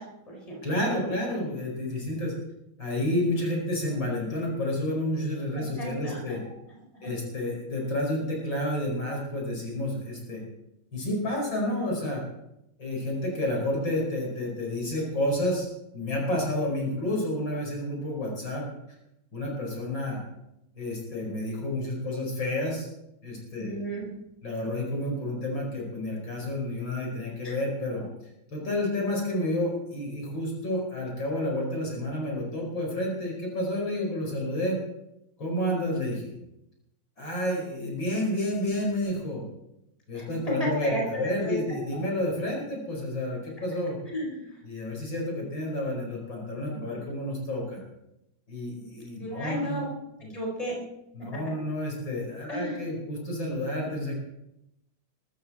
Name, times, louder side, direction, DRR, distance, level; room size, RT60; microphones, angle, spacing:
voice 1, 0.0-0.6 1.0-1.1 5.5-6.4 6.9-7.1 23.6-24.1 27.4-27.5 40.1-41.6 44.1-44.6 46.7-47.0 48.8-48.9 49.2-49.9 50.3-50.9 51.2-51.6 52.5-52.8, equal, 15° left, -1 dB, 4.5 m, -34 dB
voice 2, 0.6-2.3 2.8-6.4 7.0-10.4 10.9-12.2 12.8-15.7 15.9-18.7 19.3-20.2 20.7-22.9 23.2-23.7 24.4-28.1 28.5-34.8 35.4-36.3 37.2-39.5 40.1-44.0 44.6-47.8 48.5-49.8 50.2-50.3 51.1-54.1, left 1 dB, 60° left, -1 dB, 5.6 m, -30 dB
22.0 x 13.5 x 4.3 m, 0.86 s
omnidirectional pair, 2.3 m